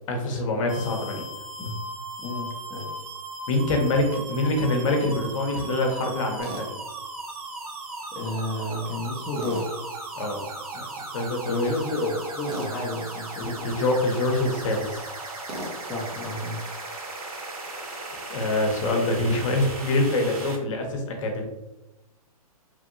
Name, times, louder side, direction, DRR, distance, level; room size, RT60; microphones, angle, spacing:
voice 1, 0.1-1.2 3.5-6.8 10.2-10.4 10.7-10.9 11.1-11.7 13.4-15.0 18.3-21.5, left 2 dB, 55° left, 2 dB, 0.7 m, -25 dB
sound 1, 0.7-20.6, right 2 dB, 75° right, 1.0 m, -37 dB
voice 2, 2.2-2.9 8.1-9.8 11.5-13.7 15.8-16.7, left 2 dB, 5° left, -5 dB, 0.5 m, -31 dB
Tools, 6.4-6.7 9.4-9.7 12.4-12.7 15.5-15.8, right 1 dB, 45° right, 0.8 m, -35 dB
3.0 x 2.5 x 2.5 m, 0.98 s
hypercardioid pair, 125°, 19 cm